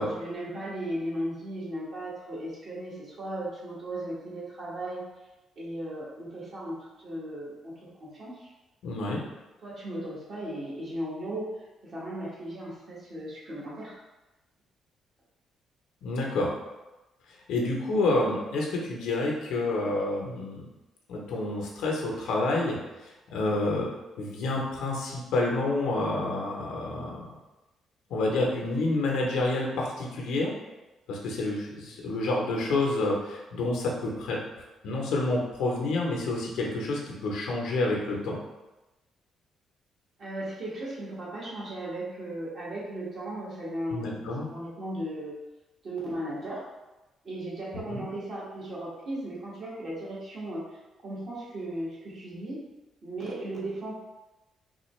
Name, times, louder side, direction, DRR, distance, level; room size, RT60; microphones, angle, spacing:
voice 1, 0.1-5.0 5.6-8.5 9.6-13.9 40.2-45.3 45.8-46.6 47.2-50.6 51.0-52.6 53.0-54.0, right 1 dB, 50° right, -7 dB, 1.4 m, -36 dB
voice 2, 8.8-9.2 16.0-16.5 17.5-20.7 21.1-22.8 23.0-23.9 24.2-27.2 28.1-30.5 31.1-34.4 34.8-38.4 43.9-44.5 47.9-48.0, left 2 dB, 85° left, -2 dB, 0.8 m, -28 dB
3.7 x 2.3 x 3.1 m, 1.1 s
cardioid pair, 90°, 0 cm